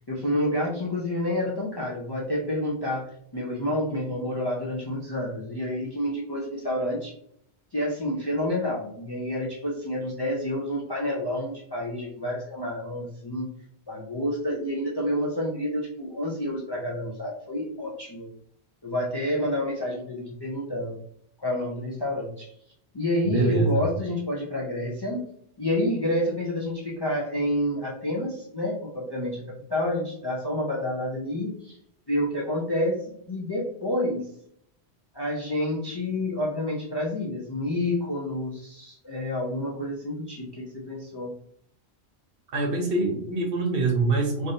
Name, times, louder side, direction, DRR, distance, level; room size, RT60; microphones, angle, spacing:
voice 1, 0.1-7.1 7.7-13.5 13.9-18.3 18.8-21.0 21.4-22.5 22.9-25.2 25.6-31.8 32.1-33.0 33.3-34.3 35.1-41.3, left 1 dB, 35° left, -4 dB, 0.4 m, -29 dB
voice 2, 23.2-23.8 42.5-44.5, right 3 dB, 60° right, 1 dB, 0.9 m, -24 dB
3.3 x 2.6 x 2.6 m, 0.68 s
omnidirectional pair, 1.1 m